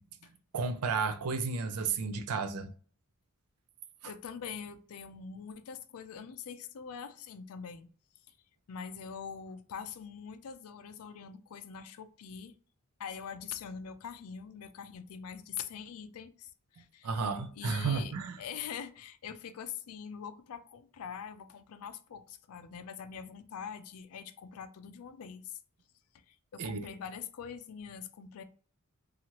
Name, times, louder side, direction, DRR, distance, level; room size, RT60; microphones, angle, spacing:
voice 1, 0.5-2.7 4.0-4.1 17.0-18.4 26.6-26.8, right 4 dB, 85° right, 0.4 m, -32 dB
voice 2, 4.1-7.9 8.3-8.4 8.7-12.5 13.0-17.3 17.5-25.6 26.3-28.4, left 7 dB, 70° left, 0.4 m, -44 dB
2.8 x 2.4 x 2.9 m
head